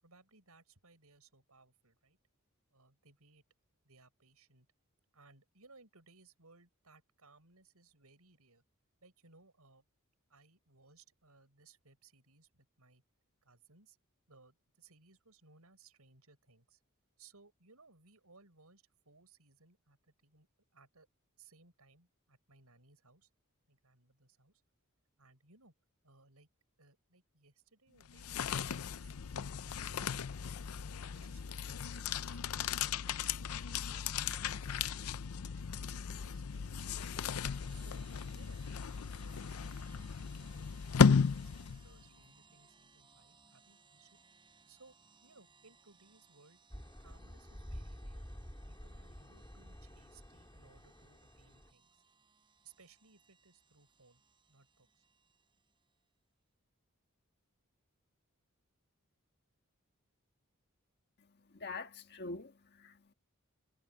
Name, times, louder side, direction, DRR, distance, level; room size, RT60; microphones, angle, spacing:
voice 1, 0.0-2.2 2.7-3.4 3.8-4.7 5.1-8.6 9.0-9.8 10.3-13.0 13.4-14.0 14.3-16.8 17.2-20.5 20.7-21.1 21.4-23.3 23.7-24.6 25.2-25.7 26.0-26.5 26.8-30.5 31.1-33.3 33.7-35.1 35.5-37.3 37.7-38.0 38.3-38.6 38.8-44.1 44.7-44.9 45.2-46.6 47.0-48.3 48.6-52.0 52.6-54.2 54.5-55.0, right 3 dB, 85° right, 6.6 m, -64 dB
sound 1, 28.0-42.1, left 6 dB, 80° left, 0.5 m, -35 dB
sound 2, 36.8-55.9, right 4 dB, 20° right, 8.0 m, -65 dB
sound 3, 46.7-51.7, equal, 20° left, 3.9 m, -50 dB
voice 2, 61.2-63.1, left 3 dB, 50° left, 1.6 m, -46 dB
head